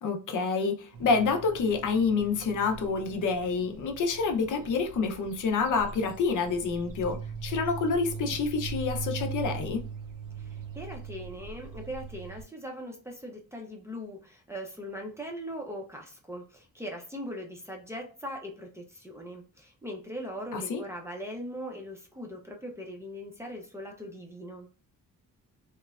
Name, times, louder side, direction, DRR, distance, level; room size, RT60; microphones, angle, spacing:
voice 1, 0.0-9.8 20.5-20.8, left 4 dB, 60° left, 0.6 m, -28 dB
sound 1, 0.9-12.4, right 5 dB, 70° right, 0.6 m, -40 dB
voice 2, 10.4-24.7, equal, 10° right, 0.5 m, -40 dB
3.0 x 2.1 x 2.3 m
wide cardioid pair, 150°, 34 cm